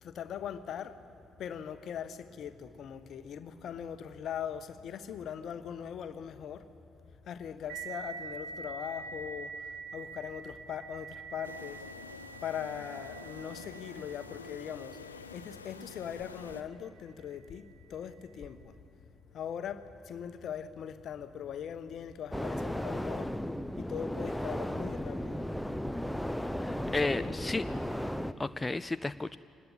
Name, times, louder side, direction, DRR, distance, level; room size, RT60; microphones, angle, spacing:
voice 1, 0.0-1.0 1.4-6.6 7.3-11.8 12.4-18.7 19.3-23.4 23.8-25.4 26.9-27.6, left 8 dB, 55° left, 1.2 m, -40 dB
sound 1, 7.7-16.9, right 5 dB, 70° right, 3.1 m, -46 dB
sound 2, 11.4-16.6, left 5 dB, 85° left, 0.6 m, -48 dB
sound 3, 22.3-28.3, equal, 5° left, 1.0 m, -35 dB
voice 2, 26.5-27.6 28.4-29.4, left 2 dB, 20° left, 0.5 m, -33 dB
24.5 x 19.0 x 8.5 m
figure-of-eight pair, 40°, 0 cm